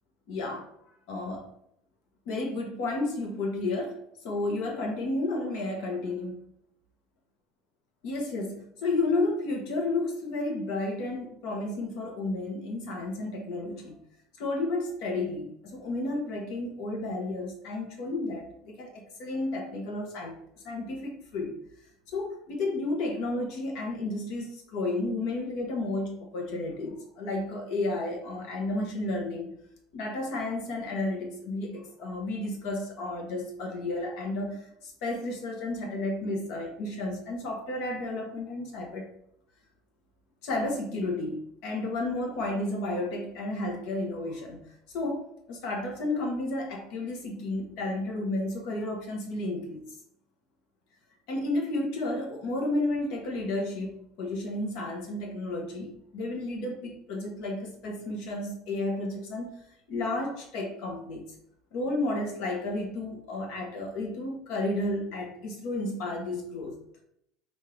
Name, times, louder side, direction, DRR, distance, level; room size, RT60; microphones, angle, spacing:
voice 1, 0.3-0.6 1.1-1.5 2.2-4.0 4.2-6.4 8.0-14.0 14.4-20.4 20.6-21.6 22.1-29.5 29.9-39.1 40.4-44.6 44.9-49.9 51.3-59.5 59.9-61.3 61.7-66.8, left 2 dB, 60° left, 2 dB, 1.3 m, -32 dB
5.3 x 2.7 x 3.3 m, 0.73 s
cardioid pair, 160°, 0 cm